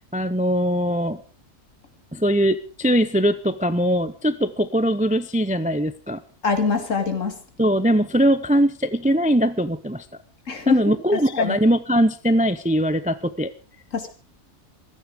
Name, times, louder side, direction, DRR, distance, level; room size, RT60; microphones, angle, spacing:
voice 1, 0.1-1.2 2.1-6.2 7.6-10.0 10.7-13.5, equal, 10° right, 14 dB, 0.5 m, -21 dB
voice 2, 6.4-7.4 10.5-11.6 13.9-14.1, left 4 dB, 70° left, 7 dB, 2.5 m, -23 dB
16.0 x 14.0 x 5.1 m, 0.37 s
omnidirectional pair, 1.4 m